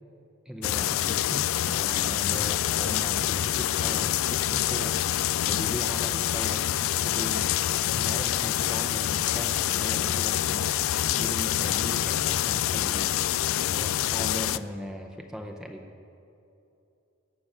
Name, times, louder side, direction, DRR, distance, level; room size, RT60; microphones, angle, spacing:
voice 1, 0.5-5.0 5.4-7.5 8.0-10.8 11.1-13.1 13.7-15.9, equal, 5° right, 2 dB, 0.6 m, -38 dB
sound 1, 0.6-14.6, left 12 dB, 65° left, 0.3 m, -26 dB
17.0 x 7.3 x 6.6 m, 2.8 s
head